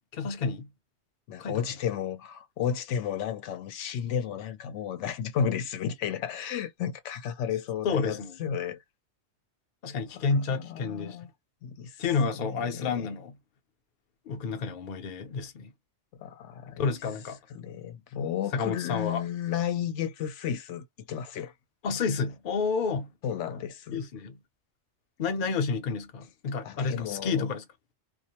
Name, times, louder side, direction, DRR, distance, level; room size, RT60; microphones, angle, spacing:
voice 1, 0.1-0.7 1.4-1.6 7.8-8.3 9.8-11.2 12.0-13.4 14.3-15.7 16.7-17.4 18.5-19.2 21.8-23.1 23.9-24.4 25.2-27.6, left 5 dB, 55° left, 0.7 m, -30 dB
voice 2, 1.3-8.8 10.3-10.4 10.6-11.3 11.6-12.0 12.4-13.1 16.2-16.8 17.5-21.5 23.2-24.0 26.6-27.5, left 8 dB, 85° left, 0.9 m, -33 dB
2.4 x 2.0 x 2.8 m
omnidirectional pair, 1.2 m